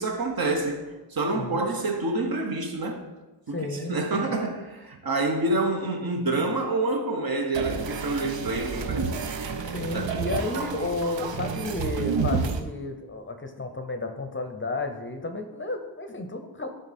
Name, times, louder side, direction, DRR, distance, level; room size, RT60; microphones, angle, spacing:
voice 1, 0.0-3.1 3.5-9.1 9.9-10.1, right 2 dB, 55° right, 1.0 m, -27 dB
voice 2, 3.5-4.3 9.7-16.7, left 2 dB, 30° left, 0.6 m, -32 dB
sound 1, 7.5-12.6, right 5 dB, 80° right, 0.7 m, -30 dB
10.5 x 3.8 x 4.2 m
wide cardioid pair, 110°, 43 cm